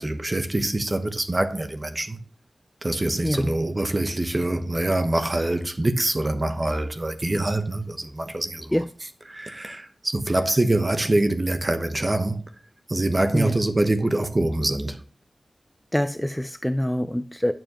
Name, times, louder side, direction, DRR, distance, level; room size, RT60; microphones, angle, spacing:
voice 1, 0.0-2.2 2.8-8.7 9.3-12.4 12.9-15.0, right 2 dB, 30° right, 0.9 m, -24 dB
voice 2, 3.2-3.5 8.7-8.9 13.3-13.5 15.9-17.5, left 1 dB, 5° left, 0.4 m, -25 dB
9.0 x 6.9 x 2.9 m
wide cardioid pair, 100°, 0 cm